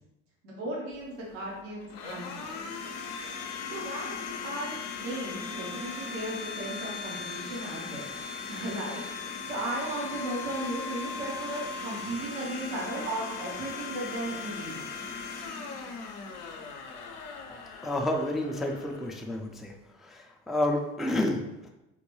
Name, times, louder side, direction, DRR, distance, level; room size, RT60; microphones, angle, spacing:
voice 1, 0.4-2.6 3.7-8.1 8.5-14.8, right 1 dB, 90° right, -4 dB, 0.9 m, -36 dB
Domestic sounds home sounds, 0.9-19.8, left 5 dB, 80° left, 0.6 m, -39 dB
voice 2, 17.8-19.7 20.0-21.7, left 1 dB, ahead, 1 dB, 0.3 m, -30 dB
3.7 x 2.2 x 3.1 m, 0.95 s
hypercardioid pair, 70°, 37 cm